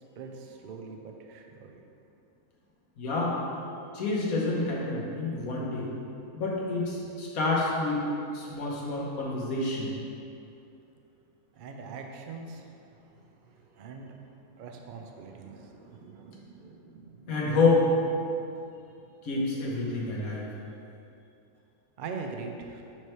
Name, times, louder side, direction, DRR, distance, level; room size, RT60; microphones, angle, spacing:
voice 1, 0.2-1.8 11.5-12.6 13.0-17.5 18.2-18.3 22.0-22.8, right 4 dB, 65° right, 3 dB, 0.5 m, -43 dB
voice 2, 3.0-3.3 3.9-5.9 6.3-8.0 8.3-9.9 17.3-17.9 19.2-20.4, left 3 dB, 85° left, -4 dB, 1.5 m, -28 dB
7.6 x 3.2 x 4.5 m, 2.7 s
omnidirectional pair, 1.5 m